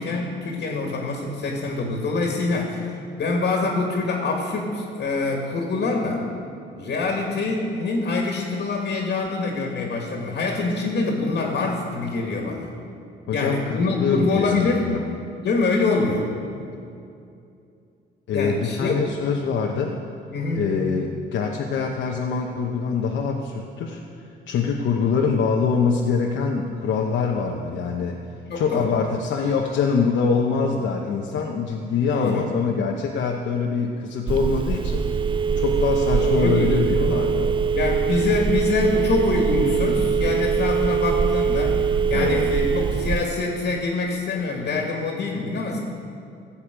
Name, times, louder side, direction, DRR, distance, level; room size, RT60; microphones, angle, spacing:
voice 1, 0.0-6.3 6.8-12.7 13.3-14.9 15.4-16.3 18.3-19.0 20.3-20.6 28.5-29.0 32.1-32.5 36.3-36.9 37.7-45.8, left 3 dB, 55° left, 1 dB, 1.8 m, -25 dB
voice 2, 13.3-15.0 18.3-20.0 20.6-24.0 24.5-28.2 28.5-35.0 35.6-37.5 42.1-42.4, left 5 dB, 75° left, 0 dB, 0.9 m, -24 dB
Telephone, 34.3-43.3, right 6 dB, 25° right, 0.3 m, -22 dB
15.5 x 7.1 x 5.1 m, 2.6 s
cardioid pair, 90°, 20 cm